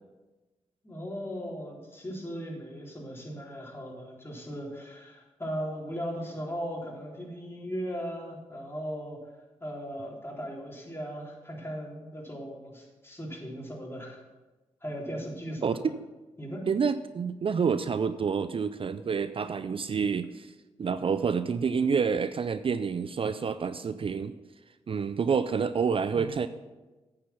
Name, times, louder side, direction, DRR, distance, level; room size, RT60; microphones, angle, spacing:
voice 1, 0.8-9.2 9.6-14.2 14.8-15.9 16.4-16.7 26.1-26.4, equal, 20° left, -3 dB, 3.6 m, -38 dB
voice 2, 16.7-20.5 20.8-24.3 24.9-26.5, right 6 dB, 45° right, 12 dB, 0.4 m, -28 dB
8.9 x 6.9 x 5.7 m, 1.2 s
supercardioid pair, 45°, 12 cm